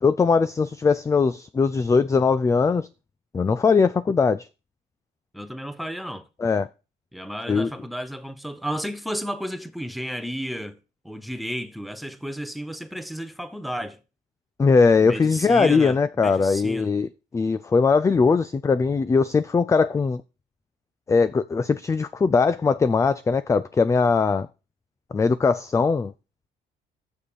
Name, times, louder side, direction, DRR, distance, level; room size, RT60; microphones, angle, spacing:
voice 1, 0.0-2.9 3.3-4.5 6.4-6.7 7.5-7.7 14.6-17.1 17.3-20.2 21.1-24.5 25.1-26.1, left 4 dB, 20° left, 0.4 m, -20 dB
voice 2, 5.3-6.2 7.1-10.8 11.0-14.0 15.0-16.9, equal, ahead, 0.9 m, -32 dB
7.3 x 6.4 x 6.8 m
cardioid pair, 110°, 17 cm